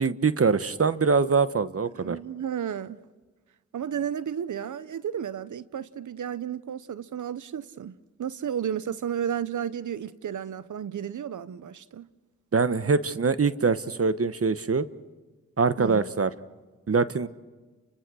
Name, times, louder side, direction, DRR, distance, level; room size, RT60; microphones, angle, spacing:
voice 1, 0.0-2.2 12.5-14.9 15.6-16.3 16.9-17.3, right 4 dB, 50° right, 1.2 m, -23 dB
voice 2, 1.9-3.0 3.7-12.1 15.8-16.0, right 9 dB, 80° right, 0.8 m, -33 dB
30.0 x 25.0 x 6.3 m
cardioid pair, 45°, 30 cm